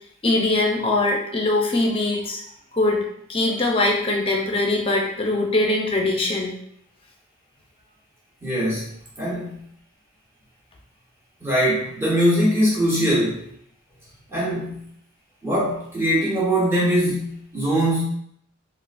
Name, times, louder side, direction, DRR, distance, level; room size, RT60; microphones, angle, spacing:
voice 1, 0.2-2.4 2.7-6.5, left 2 dB, 25° left, 0 dB, 0.6 m, -22 dB
voice 2, 8.4-9.6 11.4-13.4 14.3-14.8 15.4-18.0, equal, 10° right, -7 dB, 1.2 m, -22 dB
3.8 x 2.4 x 2.5 m, 0.69 s
head